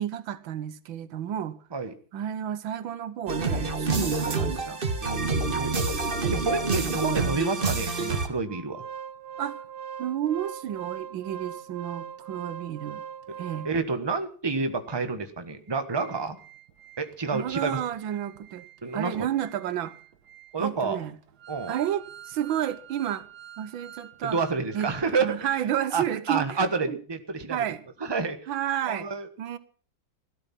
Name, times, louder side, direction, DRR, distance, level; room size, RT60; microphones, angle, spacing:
voice 1, 0.0-1.6 2.1-4.8 5.3-5.5 6.2-6.5 6.9-7.2 9.4-9.6 10.0-13.0 13.4-13.7 17.3-18.7 18.9-20.0 20.6-21.2 21.7-23.3 23.6-24.4 24.7-27.0 27.5-27.8 28.5-29.1 29.4-29.6, right 10 dB, 90° right, 1.7 m, -31 dB
sound 1, 3.3-8.3, right 3 dB, 30° right, 1.4 m, -27 dB
voice 2, 5.0-5.8 6.3-8.8 13.6-16.4 17.0-17.8 18.8-19.3 20.5-21.0 21.5-21.7 24.2-25.5 25.9-27.6 28.0-28.4 28.8-29.3, right 4 dB, 15° right, 1.2 m, -29 dB
Organ, 8.5-14.0 14.5-14.6 14.9-15.0 15.5-25.1 25.4-25.5, right 8 dB, 60° right, 1.6 m, -43 dB
17.0 x 12.5 x 5.9 m
omnidirectional pair, 2.1 m